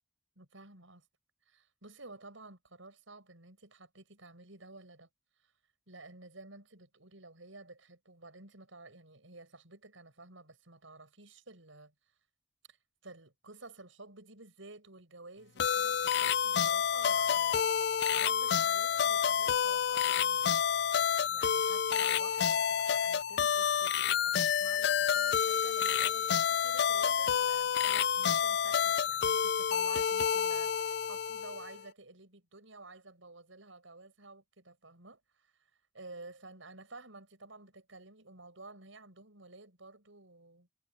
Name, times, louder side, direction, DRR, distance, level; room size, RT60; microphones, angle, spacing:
voice 1, 0.4-1.0 1.5-5.1 5.4-5.5 5.9-11.9 12.7-12.8 13.0-17.7 18.1-20.5 21.3-40.7, right 3 dB, 80° right, 6.6 m, -52 dB
sound 1, 15.6-31.8, left 8 dB, 55° left, 0.4 m, -29 dB
head